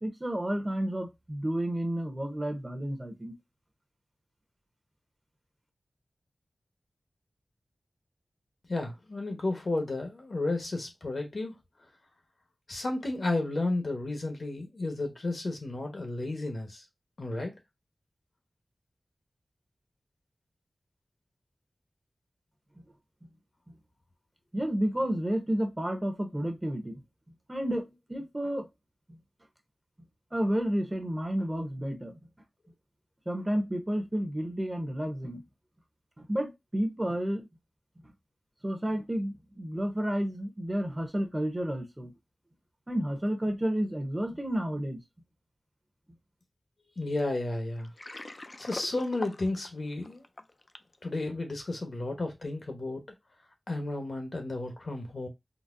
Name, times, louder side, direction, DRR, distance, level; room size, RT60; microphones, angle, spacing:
voice 1, 0.0-3.3 24.5-27.0 27.5-28.7 29.1-29.2 30.3-32.1 33.3-35.4 36.2-37.5 38.0-38.1 38.6-42.1 42.9-45.0, equal, 20° right, 0.7 m, -31 dB
voice 2, 8.7-11.6 12.7-16.8 17.2-17.5 47.0-47.9 48.6-50.2 51.0-53.0 53.7-55.3, left 2 dB, 60° left, 0.9 m, -32 dB
Water, 47.8-51.0, left 2 dB, 40° left, 0.3 m, -43 dB
3.9 x 2.0 x 2.4 m
wide cardioid pair, 70°, 0 cm